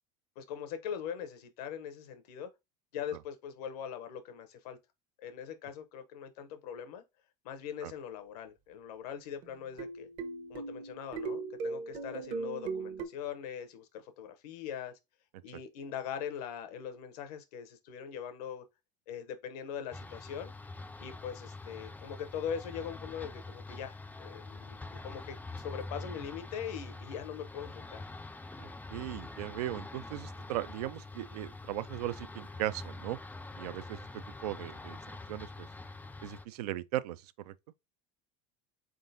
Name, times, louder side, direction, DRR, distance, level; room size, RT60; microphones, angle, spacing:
voice 1, 0.4-2.5 2.9-4.8 5.2-7.0 7.4-10.1 10.5-14.9 15.4-18.6 19.1-20.5 21.0-28.0, left 8 dB, 80° left, 0.9 m, -41 dB
sound 1, 9.4-13.0, right 4 dB, 60° right, 1.1 m, -38 dB
sound 2, 19.9-36.5, left 2 dB, 10° left, 0.4 m, -45 dB
voice 2, 28.6-33.2 33.6-35.0 35.3-35.7 36.2-37.5, right 14 dB, 85° right, 0.4 m, -38 dB
3.8 x 3.6 x 2.7 m
hypercardioid pair, 95°, 20 cm